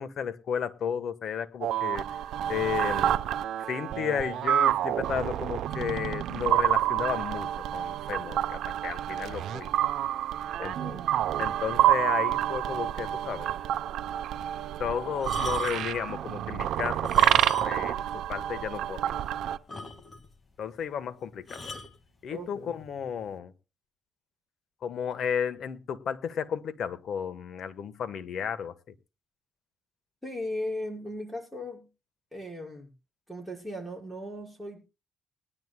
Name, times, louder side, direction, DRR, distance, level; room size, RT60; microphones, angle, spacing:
voice 1, 0.0-2.0 2.5-3.2 3.7-9.7 10.6-10.8 11.4-13.5 14.8-19.2 20.6-21.8 22.2-23.5 24.8-28.7, left 7 dB, 65° left, 1.2 m, -33 dB
sound 1, 1.6-19.6, right 11 dB, 80° right, 0.7 m, -28 dB
voice 2, 10.6-11.0 22.3-22.8 30.2-31.9 32.3-32.9 33.3-34.9, left 1 dB, 5° left, 5.8 m, -37 dB
sound 2, 15.2-16.0 16.9-17.9 18.2-18.3 18.9-19.0 19.2-19.3 19.7-20.3 21.5-21.9 22.8-23.0, left 2 dB, 30° left, 1.9 m, -40 dB
20.5 x 11.0 x 2.2 m
cardioid pair, 90°, 0 cm